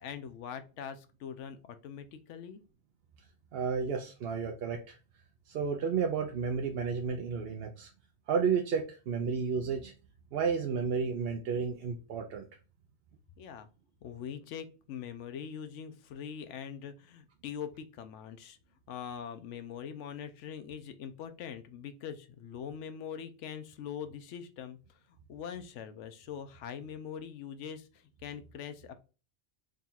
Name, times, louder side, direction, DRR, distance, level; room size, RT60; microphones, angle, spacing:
voice 1, 0.0-2.6 13.4-13.7 14.0-18.6 18.9-29.0, left 8 dB, 80° left, 10 dB, 0.9 m, -43 dB
voice 2, 3.5-5.0 5.5-7.9 8.3-9.9 10.3-12.5, right 6 dB, 65° right, 2 dB, 0.7 m, -32 dB
3.7 x 2.4 x 4.2 m, 0.33 s
omnidirectional pair, 1.2 m